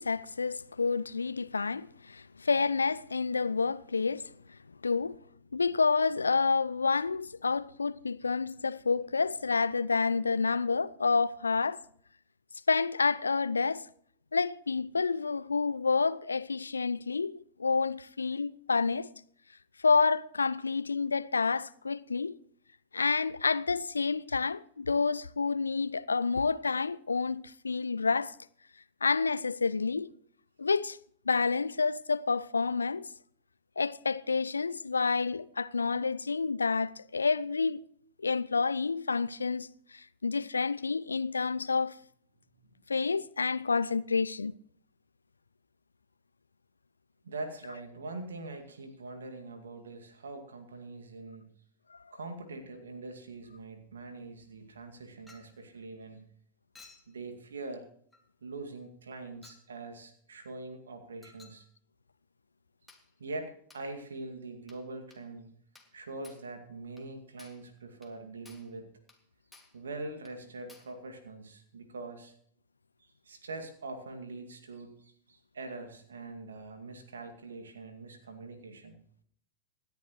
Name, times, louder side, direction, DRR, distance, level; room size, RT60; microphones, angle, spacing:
voice 1, 0.0-4.3 4.8-5.2 5.5-11.8 12.7-13.8 14.3-19.1 19.8-22.3 22.9-28.3 29.0-30.1 30.6-31.0 31.3-33.1 33.8-37.8 38.2-42.0 42.9-44.5 51.9-52.0, left 4 dB, 75° left, 0.4 m, -29 dB
voice 2, 47.2-51.5 52.1-56.3 57.1-57.9 58.4-61.7 63.2-65.5 65.9-68.9 69.7-72.3 73.2-79.0, right 3 dB, 70° right, 2.2 m, -43 dB
Chink clink, 55.3-55.6 56.7-57.1 58.1-58.3 59.4-59.7 61.2-61.6 62.9-63.1 63.7-63.9 64.7-64.9 65.1-65.3 65.7-66.0 66.2-66.5 67.0-67.1 67.4-67.7 68.0-68.2 68.4-68.7 69.1-69.2 69.5-69.8 70.2-70.4 70.7-71.0, left 3 dB, 5° left, 2.4 m, -57 dB
26.5 x 10.5 x 3.1 m
figure-of-eight pair, 90°, 0 cm